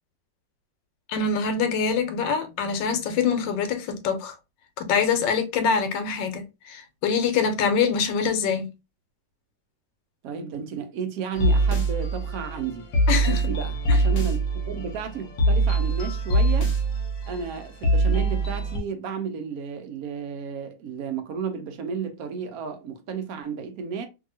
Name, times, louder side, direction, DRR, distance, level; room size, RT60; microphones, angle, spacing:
voice 1, 1.1-4.3 4.8-8.7 13.1-13.4 13.9-14.0, left 6 dB, 85° left, 1.3 m, -24 dB
voice 2, 10.2-12.9 13.2-16.7 17.3-24.1, right 6 dB, 70° right, 0.9 m, -33 dB
sound 1, 11.3-18.8, right 2 dB, 55° left, 1.0 m, -23 dB
2.8 x 2.7 x 2.7 m
omnidirectional pair, 1.9 m